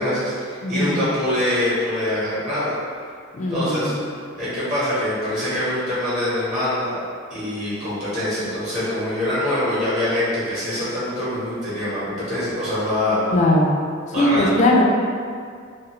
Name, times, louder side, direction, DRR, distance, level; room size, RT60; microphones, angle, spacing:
voice 1, 0.0-2.7 3.5-3.9 4.3-7.0 7.3-13.2 14.1-14.6, left 1 dB, 35° right, -12 dB, 0.9 m, -24 dB
voice 2, 0.6-1.1 3.3-3.9 13.3-13.7 14.2-14.8, left 1 dB, 35° left, -2 dB, 0.3 m, -19 dB
2.3 x 2.3 x 2.9 m, 2.2 s
head